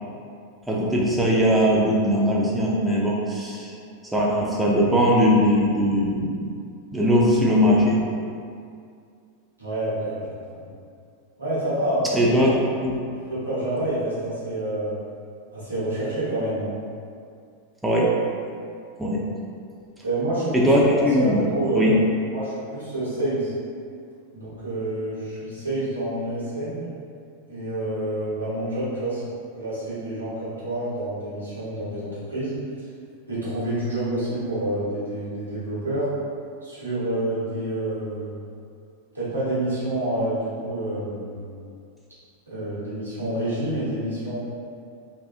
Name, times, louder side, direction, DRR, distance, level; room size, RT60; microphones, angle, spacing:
voice 1, 0.7-3.7 4.0-6.5 6.9-8.1 12.1-13.0 17.8-18.2 19.0-19.3 20.5-21.4 21.7-22.0, equal, 5° right, -5 dB, 0.4 m, -20 dB
voice 2, 9.6-10.2 10.5-10.7 11.4-12.5 13.2-14.9 15.5-16.7 20.0-20.7 21.2-22.0 22.3-23.5 24.3-26.9 27.5-29.2 29.5-32.6 33.3-36.1 36.6-38.4 39.1-41.6 42.5-44.4, right 1 dB, 85° right, -12 dB, 1.1 m, -28 dB
2.5 x 2.3 x 2.4 m, 2.3 s
figure-of-eight pair, 90°, 0 cm